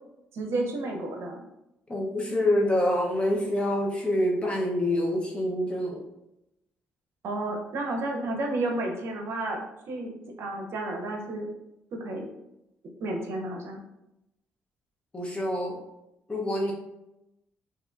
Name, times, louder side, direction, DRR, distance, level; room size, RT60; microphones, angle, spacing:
voice 1, 0.3-1.4 7.2-9.6 9.9-10.1 10.4-11.5 11.9-12.3 13.0-13.8, right 2 dB, 65° right, 2 dB, 0.7 m, -31 dB
voice 2, 1.9-6.1 15.1-15.8 16.3-16.7, left 1 dB, 20° left, -1 dB, 0.9 m, -26 dB
3.5 x 2.7 x 2.5 m, 0.89 s
cardioid pair, 80°, 5 cm